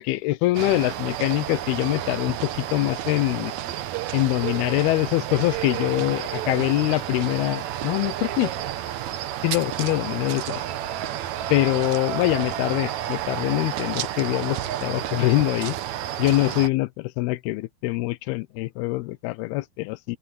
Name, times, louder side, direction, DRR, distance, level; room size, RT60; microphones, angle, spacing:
voice 1, 0.0-3.5 4.1-8.5 9.4-10.6 11.5-15.8 16.2-20.2, left 19 dB, 85° left, 2.7 m, -24 dB
sound 1, 0.5-16.7, right 12 dB, 70° right, 1.9 m, -31 dB
open air
omnidirectional pair, 4.4 m